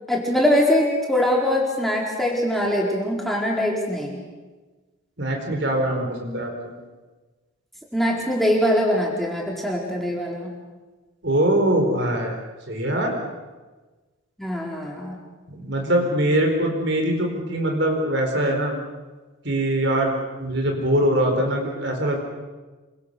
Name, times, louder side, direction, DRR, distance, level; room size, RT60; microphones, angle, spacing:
voice 1, 0.1-4.2 7.9-10.5 14.4-15.2, left 1 dB, ahead, -2 dB, 4.3 m, -22 dB
voice 2, 5.2-6.7 11.2-12.4 12.7-13.1 15.5-18.7 19.4-20.1 20.4-22.2, right 1 dB, 55° right, 3 dB, 4.6 m, -22 dB
27.5 x 24.5 x 6.9 m, 1.3 s
head